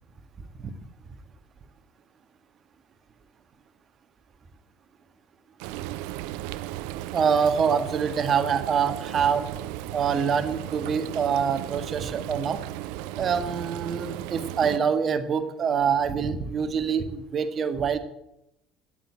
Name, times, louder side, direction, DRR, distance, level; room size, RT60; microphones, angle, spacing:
Frying (food), 5.6-14.8, right 15 dB, 60° right, 0.6 m, -35 dB
voice 1, 7.1-9.5 9.9-12.6 13.2-18.0, right 6 dB, 35° right, 8 dB, 1.6 m, -25 dB
13.5 x 9.4 x 8.7 m, 0.86 s
figure-of-eight pair, 60°, 0 cm